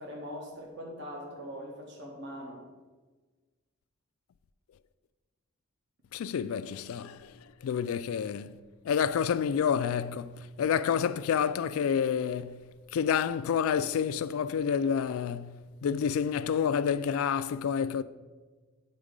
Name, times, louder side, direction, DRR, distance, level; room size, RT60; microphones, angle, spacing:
voice 1, 0.0-2.6, equal, 55° right, 1.3 m, -41 dB
voice 2, 6.1-7.3 7.6-8.6 8.8-18.0, left 7 dB, 75° left, 0.3 m, -29 dB
8.5 x 4.0 x 5.1 m
head